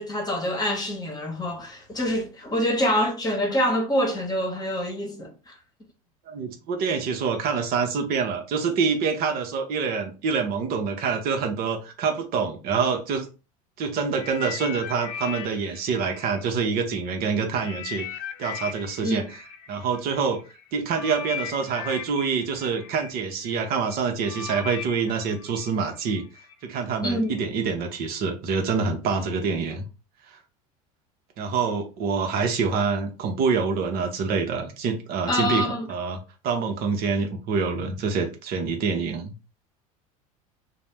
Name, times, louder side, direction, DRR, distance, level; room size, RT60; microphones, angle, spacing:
voice 1, 0.0-5.5 19.0-19.3 27.0-27.3 35.3-35.9, equal, 20° left, 1.0 m, -26 dB
voice 2, 6.3-13.3 13.8-18.1 18.4-19.4 19.7-20.4 20.7-26.2 26.6-29.9 31.4-36.2 36.4-39.3, right 5 dB, 55° right, 0.7 m, -26 dB
sound 1, 14.1-17.1 17.5-26.5 27.3-27.4, left 8 dB, 55° left, 0.6 m, -38 dB
2.6 x 2.1 x 3.2 m
supercardioid pair, 100°, 19 cm